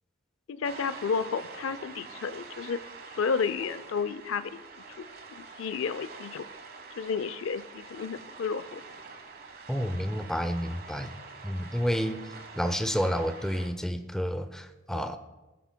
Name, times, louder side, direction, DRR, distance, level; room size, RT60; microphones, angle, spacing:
voice 1, 0.5-2.8 3.1-4.6 5.0-6.5 7.0-8.8, left 5 dB, 80° left, 14 dB, 0.4 m, -32 dB
sound 1, 0.6-13.7, right 4 dB, 50° right, 1.0 m, -46 dB
voice 2, 9.7-11.1 11.4-12.3 12.6-15.2, equal, 5° left, 9 dB, 0.5 m, -30 dB
19.5 x 9.1 x 2.2 m, 1.1 s
head